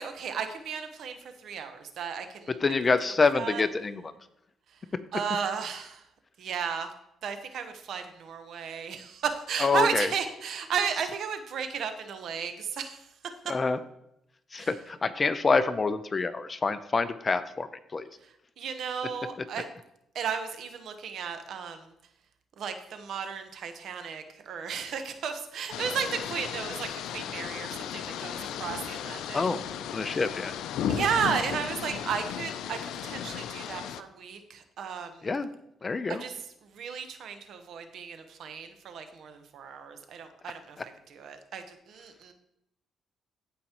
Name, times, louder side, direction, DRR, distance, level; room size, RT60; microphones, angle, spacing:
voice 1, 0.0-2.5 3.3-3.6 4.7-4.8 5.1-6.0 6.4-6.9 7.2-13.0 14.6-14.7 18.6-19.6 20.1-21.9 22.6-29.4 30.9-35.3 36.1-36.3 36.6-40.8 41.1-42.3, right 7 dB, 70° right, 7 dB, 1.1 m, -34 dB
voice 2, 2.6-4.1 9.6-10.1 13.5-13.8 14.5-18.1 29.3-29.6 29.9-30.5 35.2-35.5 35.8-36.2, left 4 dB, 30° left, 12 dB, 0.6 m, -26 dB
sound 1, 25.7-34.0, left 9 dB, 85° left, 0.4 m, -35 dB
15.0 x 5.2 x 3.0 m, 0.80 s
cardioid pair, 90°, 0 cm